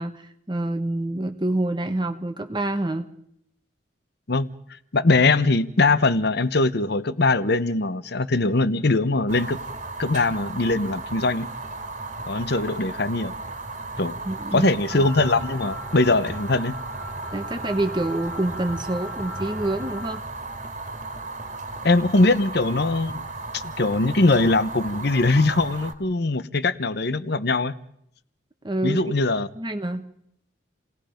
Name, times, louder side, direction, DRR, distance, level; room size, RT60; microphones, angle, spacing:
voice 1, 0.0-3.1 14.2-15.1 17.3-20.2 28.6-29.1 29.5-30.1, right 1 dB, 20° right, 1.1 m, -27 dB
voice 2, 4.9-9.6 10.0-11.5 12.3-13.3 14.0-14.2 14.5-16.8 21.8-23.2 23.5-27.7 28.8-29.5, left 2 dB, 55° left, 1.0 m, -21 dB
Fire, 9.3-25.9, right 3 dB, 35° right, 2.0 m, -35 dB
sound 1, 14.9-20.2, left 1 dB, 5° left, 2.4 m, -39 dB
29.5 x 18.5 x 5.2 m
head